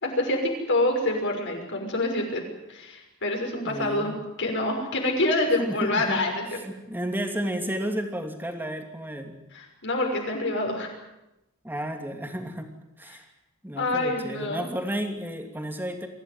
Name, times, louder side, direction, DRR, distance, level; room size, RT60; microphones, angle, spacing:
voice 1, 0.0-2.4 2.7-4.1 4.4-6.4 9.5-10.9 13.8-14.7, left 2 dB, 55° left, 2 dB, 6.1 m, -26 dB
voice 2, 3.6-4.2 5.6-6.2 6.5-9.3 11.6-12.7 13.0-13.2 13.6-16.1, equal, 10° right, 4 dB, 2.8 m, -32 dB
24.5 x 16.0 x 9.6 m, 0.93 s
head